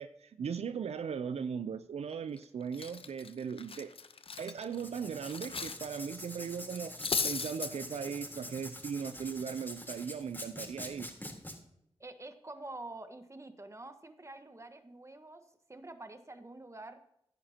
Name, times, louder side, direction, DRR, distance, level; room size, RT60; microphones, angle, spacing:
voice 1, 0.0-3.9 4.4-6.9 7.2-11.1, right 7 dB, 80° right, 11 dB, 0.5 m, -38 dB
Cutlery silverware, 2.1-2.4 2.7-5.8 6.1-6.3 6.7-7.7, left 5 dB, 60° left, 0.8 m, -36 dB
Writing, 4.7-11.5, left 1 dB, 20° left, 3.6 m, -45 dB
voice 2, 12.0-15.4 15.7-17.0, right 2 dB, 30° right, 8 dB, 1.4 m, -47 dB
16.0 x 10.5 x 2.9 m, 0.78 s
cardioid pair, 40°, 11 cm